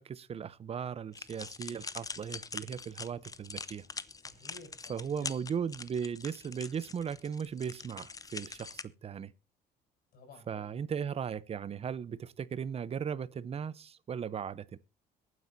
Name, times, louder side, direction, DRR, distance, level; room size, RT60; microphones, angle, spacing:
voice 1, 0.0-3.8 4.9-9.3 10.5-14.8, right 7 dB, 35° right, 0.7 m, -37 dB
sound 1, 1.1-8.8, left 4 dB, 20° left, 0.7 m, -44 dB
voice 2, 4.2-5.3 10.1-10.7, left 3 dB, 60° left, 7.1 m, -54 dB
22.5 x 9.4 x 2.7 m
cardioid pair, 110°, 17 cm